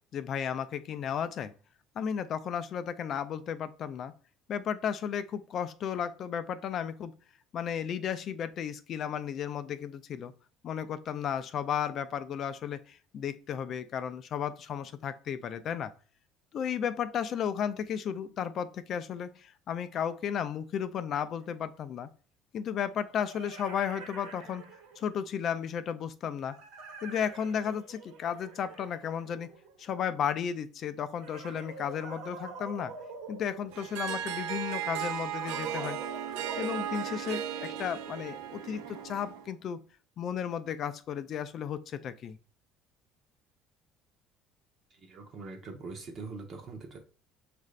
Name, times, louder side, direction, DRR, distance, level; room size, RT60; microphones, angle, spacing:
voice 1, 0.1-1.5 2.0-4.1 4.5-7.1 7.5-10.3 10.6-15.9 16.5-22.1 22.5-24.7 25.0-26.6 27.0-29.5 29.8-32.9 33.3-36.0 36.6-39.8 40.2-42.4, left 8 dB, 40° left, 12 dB, 0.3 m, -34 dB
sound 1, 21.4-21.5 22.8-25.2 26.4-29.9 31.1-34.2 35.3-39.6, right 4 dB, 70° right, 1.1 m, -46 dB
Harp, 33.7-39.5, right 10 dB, 90° right, 0.4 m, -36 dB
voice 2, 44.9-47.0, right 4 dB, 35° right, 2 dB, 0.7 m, -43 dB
6.4 x 2.5 x 3.2 m, 0.39 s
cardioid pair, 160°, 0 cm